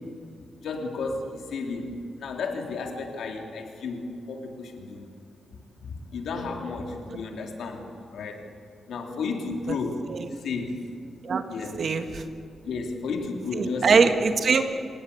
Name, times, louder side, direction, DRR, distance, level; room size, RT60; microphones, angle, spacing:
voice 1, 0.6-5.0 5.8-7.8 8.1-8.4 8.9-10.1 10.4-10.8 11.5-11.8 12.6-14.1, left 4 dB, 85° left, 2 dB, 3.4 m, -32 dB
voice 2, 11.8-12.2 13.5-14.6, right 5 dB, 50° right, 7 dB, 1.7 m, -23 dB
26.5 x 18.5 x 8.6 m, 2.4 s
wide cardioid pair, 145°, 0 cm